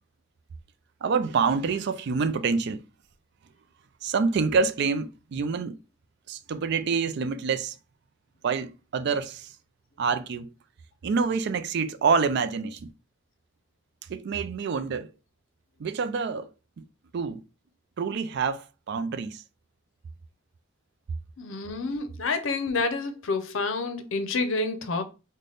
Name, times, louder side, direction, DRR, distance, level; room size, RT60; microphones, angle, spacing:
voice 1, 1.0-2.8 4.0-5.8 6.3-7.8 8.4-9.5 10.0-10.5 11.0-12.9 14.1-15.1 15.8-16.5 16.8-16.9 17.1-17.4 18.0-19.4, right 5 dB, 55° right, 0.4 m, -27 dB
voice 2, 21.4-25.0, left 3 dB, 70° left, 0.6 m, -28 dB
3.4 x 2.2 x 3.8 m
head